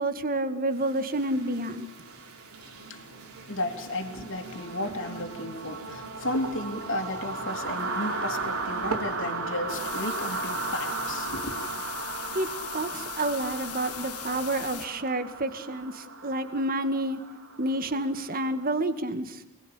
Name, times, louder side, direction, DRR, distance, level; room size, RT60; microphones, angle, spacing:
voice 1, 0.0-1.9 12.3-12.5 12.7-17.2 17.6-19.4, right 1 dB, 40° right, 2.1 m, -29 dB
sound 1, 0.8-18.6, right 3 dB, 70° right, 4.5 m, -36 dB
sound 2, 1.1-11.9, right 3 dB, 90° right, 3.6 m, -44 dB
voice 2, 2.6-11.5, left 1 dB, 60° left, 3.2 m, -34 dB
sound 3, 9.7-14.9, left 12 dB, 90° left, 1.5 m, -40 dB
29.0 x 21.5 x 8.6 m
head